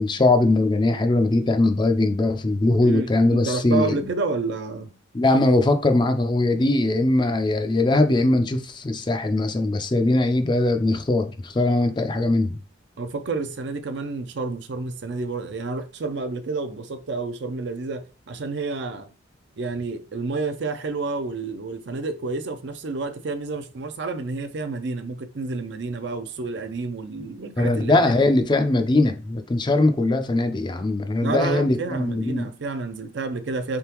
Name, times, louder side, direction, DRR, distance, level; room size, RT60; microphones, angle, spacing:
voice 1, 0.0-4.1 5.1-12.6 27.6-32.5, left 2 dB, 25° left, 0.4 m, -21 dB
voice 2, 2.8-4.9 13.0-19.1 19.6-28.3 31.2-33.8, right 3 dB, 60° right, 0.5 m, -30 dB
3.8 x 3.5 x 2.9 m
head